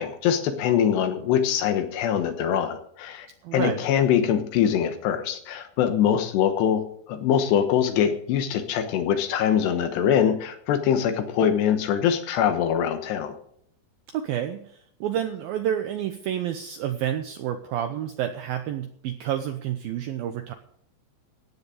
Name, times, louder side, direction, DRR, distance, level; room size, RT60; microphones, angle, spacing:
voice 1, 0.0-3.3 3.5-13.4, left 9 dB, 75° left, 7 dB, 3.2 m, -23 dB
voice 2, 3.4-3.9 14.1-20.5, right 10 dB, 85° right, 7 dB, 2.1 m, -29 dB
15.5 x 9.6 x 5.0 m, 0.66 s
omnidirectional pair, 5.1 m